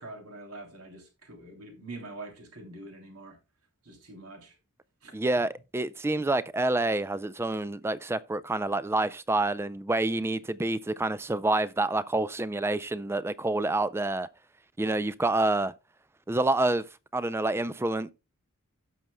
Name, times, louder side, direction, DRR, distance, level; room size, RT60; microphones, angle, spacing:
voice 1, 0.0-3.4 3.8-4.5 5.0-5.1, right 2 dB, 80° right, 2.9 m, -44 dB
voice 2, 5.1-14.3 14.8-15.7 16.3-16.8 17.1-18.1, right 2 dB, 10° right, 0.3 m, -28 dB
17.0 x 6.2 x 2.2 m
head